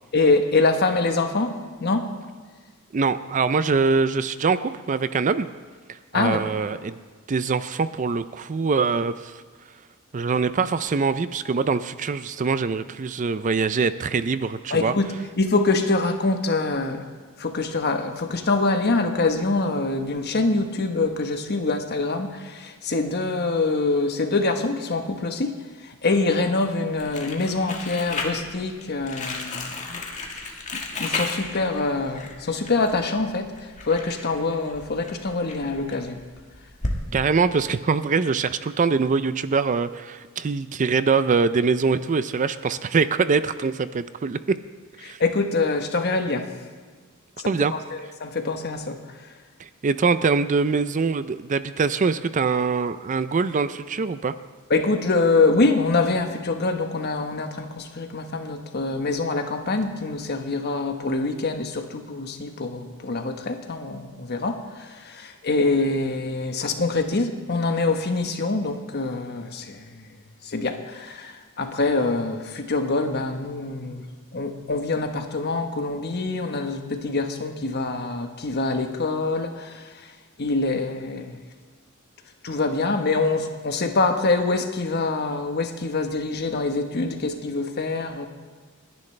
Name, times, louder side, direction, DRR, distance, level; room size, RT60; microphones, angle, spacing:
voice 1, 0.1-2.1 6.1-6.4 14.7-15.1 15.4-17.0 17.4-25.6 25.8-30.0 30.7-33.5 33.8-36.2 45.0-46.5 47.4-47.5 47.9-49.0 54.7-69.9 70.4-74.0 74.3-80.1 80.4-81.4 82.4-88.3, left 3 dB, 50° left, 6 dB, 1.2 m, -25 dB
voice 2, 2.9-5.5 6.1-7.0 7.3-9.3 10.1-14.9 37.1-44.4 45.0-45.2 47.5-47.7 49.6-54.3, right 4 dB, 35° right, 13 dB, 0.4 m, -23 dB
Crumpling crinkling, 27.0-37.0, left 3 dB, 35° left, 1.6 m, -34 dB
30.0 x 10.5 x 3.3 m, 1.5 s
head